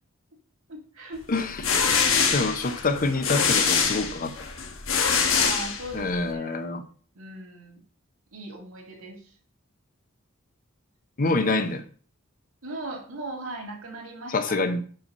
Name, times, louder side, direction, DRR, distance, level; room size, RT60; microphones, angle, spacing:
voice 1, 0.7-1.2 5.3-6.7 7.1-7.8 8.3-9.3 12.6-14.5, right 1 dB, 80° right, 2.3 m, -38 dB
sound 1, 1.4-6.2, left 6 dB, 70° left, 1.1 m, -24 dB
voice 2, 2.3-4.3 5.9-6.8 11.2-11.8 14.3-14.8, left 3 dB, 45° left, 0.7 m, -26 dB
5.6 x 5.2 x 5.4 m
head